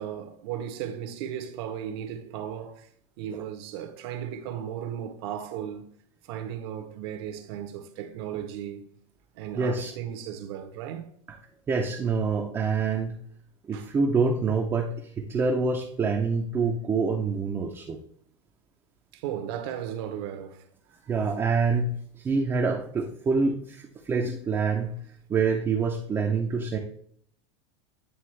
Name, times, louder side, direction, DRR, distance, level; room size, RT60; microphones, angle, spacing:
voice 1, 0.0-2.9 3.2-5.9 6.3-8.9 9.4-11.1 13.7-13.9 19.1-20.6, right 9 dB, 60° right, 0.8 m, -35 dB
voice 2, 9.6-9.9 11.7-13.2 13.7-18.0 21.1-24.9 25.3-26.8, right 4 dB, 15° right, 0.5 m, -26 dB
9.4 x 3.4 x 3.2 m
supercardioid pair, 155°, 16 cm